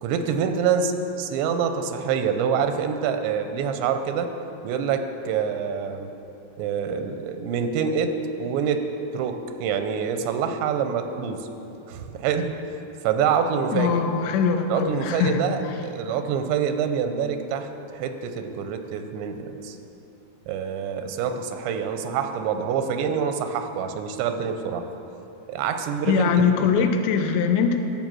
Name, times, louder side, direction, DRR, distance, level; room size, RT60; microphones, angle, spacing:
voice 1, 0.0-4.3 4.6-6.1 6.6-8.9 9.1-11.5 11.9-12.5 13.0-14.0 14.7-19.8 20.5-24.9 25.5-26.9, right 7 dB, 90° right, 8 dB, 3.0 m, -26 dB
voice 2, 13.7-15.4 26.1-27.8, left 6 dB, 90° left, 6 dB, 3.0 m, -22 dB
13.5 x 5.5 x 7.5 m, 3.0 s
omnidirectional pair, 4.9 m